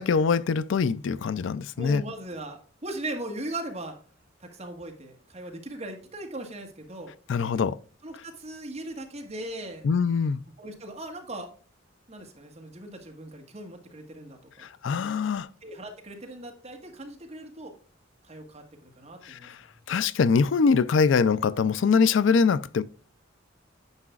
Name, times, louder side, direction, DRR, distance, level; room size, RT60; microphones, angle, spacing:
voice 1, 0.0-2.0 7.3-7.8 9.8-10.4 14.8-15.5 19.2-19.6 19.9-22.8, left 5 dB, 70° left, 0.4 m, -23 dB
voice 2, 1.8-4.0 4.4-7.1 8.0-9.9 10.6-11.5 12.1-14.7 14.9-15.2 15.6-17.7 18.2-19.9, right 1 dB, 35° right, 1.6 m, -39 dB
9.7 x 5.7 x 2.4 m
head